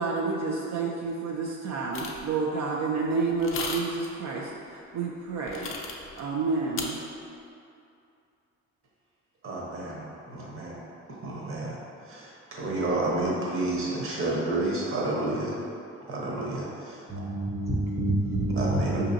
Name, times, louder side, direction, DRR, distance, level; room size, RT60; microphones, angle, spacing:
voice 1, 0.0-5.7 6.2-7.0, right 4 dB, 65° right, -2 dB, 0.5 m, -29 dB
sound 1, 1.9-2.3 3.4-4.1 5.5-6.2 6.8-6.9, left 4 dB, 45° left, 0.5 m, -35 dB
voice 2, 9.4-10.8 11.2-11.8 12.1-15.5 16.1-17.0 18.5-19.1, right 2 dB, 45° right, -4 dB, 1.0 m, -30 dB
voice 3, 17.1-19.1, right 1 dB, 10° right, -4 dB, 0.5 m, -27 dB
4.8 x 2.8 x 2.6 m, 2.6 s
cardioid pair, 90°, 30 cm